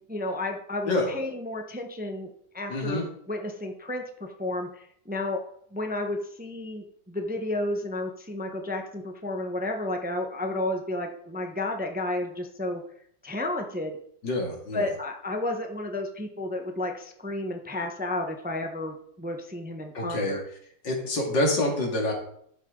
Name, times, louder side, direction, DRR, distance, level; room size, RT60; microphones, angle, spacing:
voice 1, 0.1-5.4 5.7-12.8 13.2-14.0 14.7-20.4, left 1 dB, 5° right, 3 dB, 0.9 m, -32 dB
voice 2, 2.7-3.0 14.2-14.8 19.9-20.4 20.8-22.1, left 1 dB, 85° left, 0 dB, 3.0 m, -26 dB
12.5 x 8.2 x 3.9 m, 0.66 s
omnidirectional pair, 1.9 m